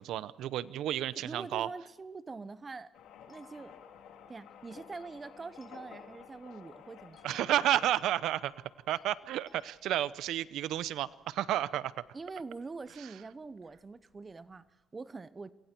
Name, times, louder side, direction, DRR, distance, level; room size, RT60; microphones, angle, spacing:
voice 1, 0.0-1.7 7.2-8.5 8.9-11.9, right 12 dB, 85° right, 16 dB, 0.8 m, -31 dB
voice 2, 1.2-2.9 3.3-3.8 4.3-7.4 12.1-15.5, right 4 dB, 30° right, 15 dB, 0.9 m, -44 dB
sound 1, 2.9-14.7, left 7 dB, 90° left, 3.1 m, -55 dB
sound 2, 3.3-4.4 4.9-6.7 7.1-9.8, left 3 dB, 40° left, 7.5 m, -63 dB
28.5 x 23.0 x 4.5 m, 1.0 s
cardioid pair, 90°, 0 cm